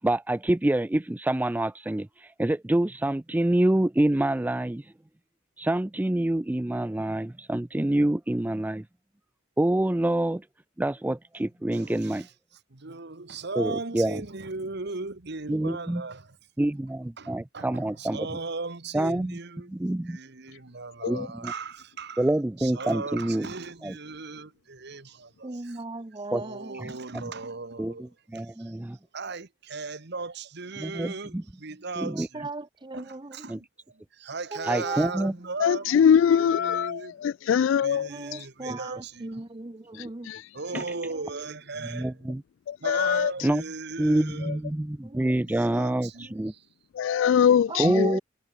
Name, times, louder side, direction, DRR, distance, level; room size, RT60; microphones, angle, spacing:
voice 1, 0.0-4.9 5.6-8.9 9.6-10.5 10.8-12.3 13.6-14.2 15.5-16.0 16.6-18.3 18.9-20.2 21.1-21.5 22.2-23.5 23.8-24.0 26.3-26.4 26.7-27.3 27.8-29.0 30.8-31.4 32.0-32.3 33.5-33.6 34.7-35.3 38.7-38.8 39.9-40.0 40.7-40.8 41.9-42.4 43.4-43.6 44.0-46.5 47.8-48.2, right 1 dB, 10° right, 0.3 m, -27 dB
voice 2, 11.7-12.3 12.7-16.4 17.2-19.8 20.1-22.2 22.6-25.8 26.3-28.1 28.3-28.8 29.1-32.5 32.9-35.9 36.4-37.2 37.8-39.3 40.5-42.2 42.8-44.6 45.4-46.3 46.5-46.6, right 3 dB, 60° right, 1.5 m, -37 dB
voice 3, 25.4-26.8 32.1-33.5 34.5-35.2 35.9-36.1 38.1-40.3 41.1-41.5 45.0-45.9 46.3-46.4 47.7-48.2, right 3 dB, 25° right, 0.8 m, -38 dB
voice 4, 35.6-38.1 40.3-40.4 42.7-43.3 44.4-44.5 46.9-48.2, left 8 dB, 70° left, 0.3 m, -22 dB
head